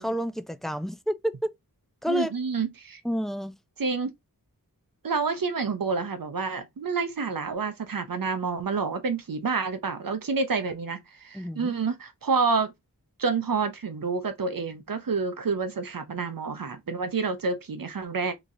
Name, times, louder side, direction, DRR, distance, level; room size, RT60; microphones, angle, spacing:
voice 1, 0.0-1.5 2.0-2.3 3.0-3.5 11.3-11.7, equal, ahead, 0.3 m, -29 dB
voice 2, 2.1-3.0 3.8-4.1 5.0-12.7 13.2-18.3, right 4 dB, 65° right, 0.7 m, -28 dB
3.8 x 3.0 x 2.7 m
wide cardioid pair, 75°, 37 cm